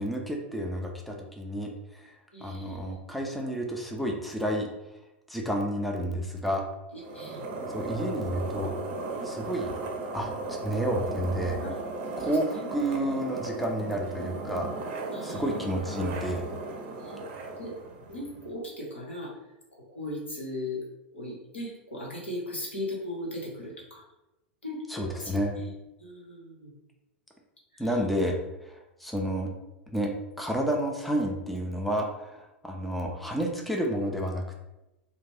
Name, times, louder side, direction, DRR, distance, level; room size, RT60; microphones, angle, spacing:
voice 1, 0.0-2.1 2.4-4.7 5.3-6.6 7.7-8.7 9.2-9.7 10.1-11.6 12.2-14.7 15.2-16.4 24.9-25.5 27.8-28.4 28.6-29.5 29.9-30.1 30.4-34.6, equal, ahead, 0 dB, 0.4 m, -30 dB
voice 2, 2.3-3.0 6.9-7.4 11.6-11.7 12.1-12.8 15.1-15.5 17.0-17.2 17.6-17.7 18.1-19.3 19.9-20.8 21.1-24.0 24.6-25.7 26.0-26.7 27.7-28.0, left 1 dB, 85° left, -4 dB, 1.0 m, -38 dB
sound 1, 7.0-18.5, right 3 dB, 50° right, 0.5 m, -36 dB
2.4 x 2.2 x 3.3 m, 0.96 s
figure-of-eight pair, 95°, 6 cm